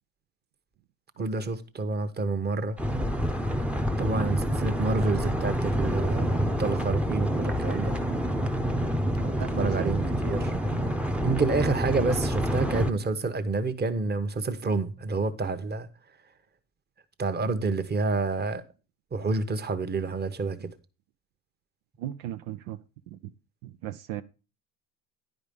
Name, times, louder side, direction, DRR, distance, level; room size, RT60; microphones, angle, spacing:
voice 1, 1.2-2.8 4.0-8.0 9.2-10.5 11.2-15.9 17.2-18.6 19.1-20.7, right 3 dB, 25° right, 1.1 m, -28 dB
sound 1, 2.8-12.9, equal, 5° right, 0.7 m, -27 dB
voice 2, 9.4-10.0 22.0-22.8 23.1-23.3 23.6-24.2, right 12 dB, 75° right, 0.7 m, -37 dB
9.9 x 5.1 x 5.3 m
supercardioid pair, 75°, 42 cm